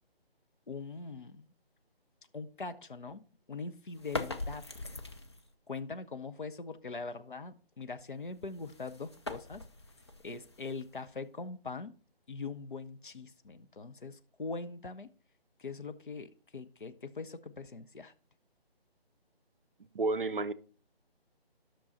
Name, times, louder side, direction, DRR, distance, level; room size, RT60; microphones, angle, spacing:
voice 1, 0.7-1.5 2.3-4.7 5.7-9.6 10.2-11.9 12.3-15.1 15.6-18.1, left 4 dB, 55° left, 0.8 m, -42 dB
sound 1, 3.9-5.5 8.3-11.2, left 2 dB, 25° left, 0.5 m, -42 dB
voice 2, 19.9-20.5, right 3 dB, 55° right, 0.7 m, -30 dB
11.0 x 6.2 x 4.1 m
figure-of-eight pair, 150°, 31 cm